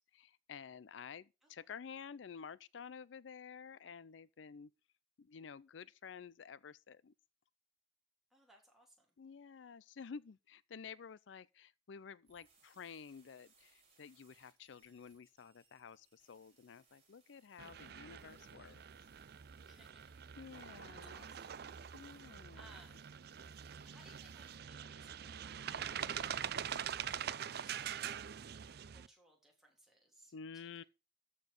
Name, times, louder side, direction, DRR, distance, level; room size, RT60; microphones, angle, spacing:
voice 1, 0.1-4.7 5.2-7.1 9.2-18.8 20.4-21.3 21.9-22.7 30.3-30.8, left 6 dB, 85° left, 0.5 m, -51 dB
voice 2, 8.3-9.2 19.6-20.0 20.6-21.7 22.5-23.1 23.8-28.2 28.9-30.8, right 1 dB, ahead, 3.2 m, -65 dB
sound 1, 12.3-24.6, right 4 dB, 35° right, 6.1 m, -73 dB
sound 2, 17.6-29.1, right 8 dB, 60° right, 0.5 m, -44 dB
13.5 x 4.6 x 6.5 m
head